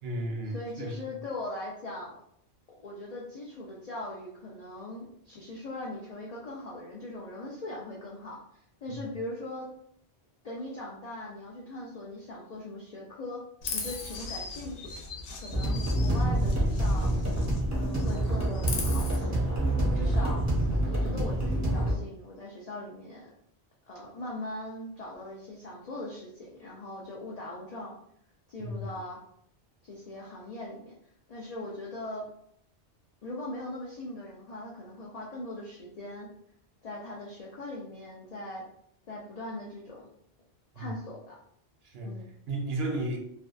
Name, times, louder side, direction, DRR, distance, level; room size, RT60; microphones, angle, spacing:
voice 1, 0.0-1.0 8.9-9.0 19.9-20.3 28.6-29.0 40.7-40.9 41.8-43.2, right 1 dB, 65° right, 0.8 m, -34 dB
voice 2, 0.5-2.2 2.8-9.7 10.4-13.4 13.7-14.9 15.4-17.1 17.7-19.6 19.9-20.4 20.9-23.3 23.9-27.9 28.5-29.2 29.8-30.9 31.3-32.2 33.2-36.3 36.8-38.6 39.1-40.1 40.8-41.4 42.0-42.3, left 1 dB, 65° left, 0.4 m, -40 dB
Chirp tweet, 13.6-17.6 17.9-19.2, left 4 dB, 90° left, 0.9 m, -39 dB
sound 1, 15.5-21.9, right 1 dB, 20° right, 0.5 m, -27 dB
2.5 x 2.3 x 2.4 m
omnidirectional pair, 1.2 m